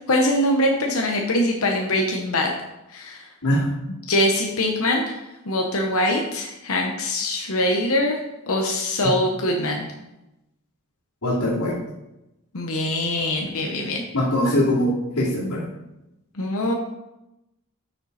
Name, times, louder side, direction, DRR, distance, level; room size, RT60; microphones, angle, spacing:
voice 1, 0.1-2.5 2.9-3.3 3.9-5.2 5.5-8.2 8.5-9.9 12.5-14.0 16.4-16.7, left 1 dB, 65° left, 1 dB, 1.0 m, -23 dB
voice 2, 11.2-11.7 14.1-15.6, left 1 dB, 90° left, -10 dB, 2.9 m, -22 dB
8.8 x 6.8 x 4.3 m, 0.93 s
head